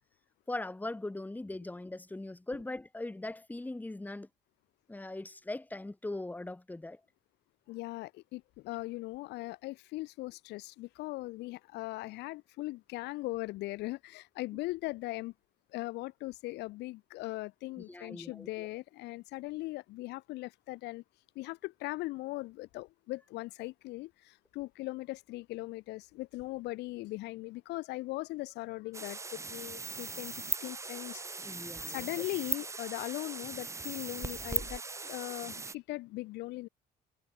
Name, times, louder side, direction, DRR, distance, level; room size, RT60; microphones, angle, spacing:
voice 1, 0.5-4.3 4.9-7.0 17.9-18.7 31.4-32.2, left 2 dB, 10° left, 2.4 m, -40 dB
voice 2, 7.7-15.3 15.7-21.0 21.4-31.2 31.9-34.8 35.1-36.7, left 20 dB, 85° left, 2.5 m, -39 dB
sound 1, 28.9-35.7, right 3 dB, 15° right, 1.2 m, -39 dB
cardioid pair, 110°, 17 cm